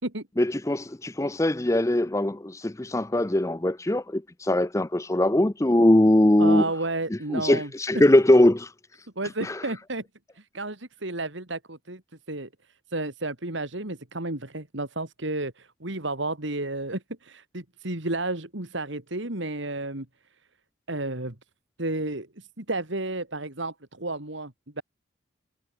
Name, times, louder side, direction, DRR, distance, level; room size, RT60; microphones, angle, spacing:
voice 1, 0.4-6.6 7.1-8.7 9.4-9.7, left 1 dB, 15° left, 0.5 m, -21 dB
voice 2, 6.4-7.7 9.2-10.0 10.4-12.0 12.3-12.5 12.9-20.1 20.9-21.3 21.8-24.8, right 2 dB, 65° right, 2.8 m, -32 dB
head